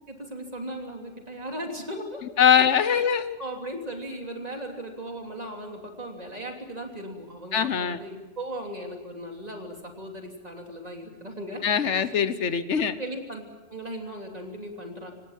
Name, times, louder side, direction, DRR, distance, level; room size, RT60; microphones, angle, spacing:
voice 1, 0.1-2.2 2.6-2.7 2.9-3.0 3.4-11.6 12.0-12.2 13.0-13.4 13.7-15.1, right 1 dB, 35° right, 2 dB, 3.2 m, -37 dB
voice 2, 2.4-3.4 7.5-8.0 11.6-12.9, left 8 dB, 80° left, 13 dB, 1.3 m, -22 dB
26.0 x 18.0 x 7.4 m, 1.2 s
omnidirectional pair, 1.2 m